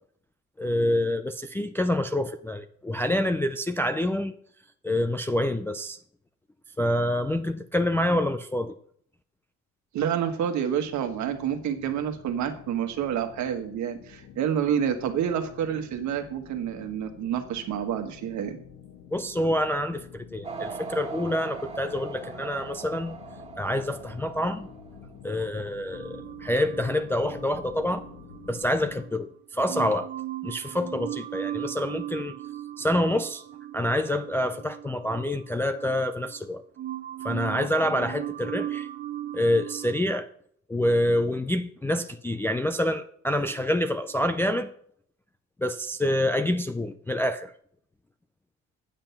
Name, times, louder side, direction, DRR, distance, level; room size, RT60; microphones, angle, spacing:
voice 1, 0.6-4.3 4.8-6.0 6.8-8.7 19.1-23.2 23.6-24.7 25.2-28.0 28.5-30.1 30.4-32.3 32.8-33.4 33.7-36.6 37.2-38.9 39.3-40.3 40.7-44.7 45.6-47.5, left 1 dB, 5° left, 0.3 m, -27 dB
voice 2, 9.9-18.6, right 9 dB, 60° right, 1.5 m, -28 dB
sound 1, 10.8-29.0, left 7 dB, 55° left, 1.7 m, -48 dB
sound 2, 20.4-25.1, right 5 dB, 20° right, 1.7 m, -40 dB
sound 3, 25.9-29.2 29.7-36.5 36.8-40.0, right 13 dB, 35° right, 0.8 m, -38 dB
9.0 x 7.6 x 5.7 m
cardioid pair, 155°, 32 cm